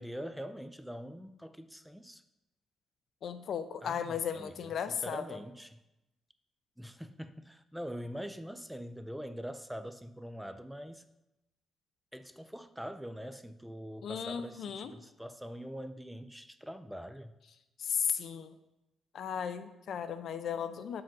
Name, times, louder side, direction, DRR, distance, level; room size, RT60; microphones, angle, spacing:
voice 1, 0.0-2.2 3.8-5.8 6.8-11.0 12.1-17.3, equal, ahead, 10 dB, 0.4 m, -43 dB
voice 2, 3.2-5.4 14.0-14.9 17.8-18.5 19.1-21.0, left 8 dB, 65° left, 11 dB, 0.4 m, -35 dB
6.0 x 4.8 x 3.7 m, 0.92 s
cardioid pair, 90°, 0 cm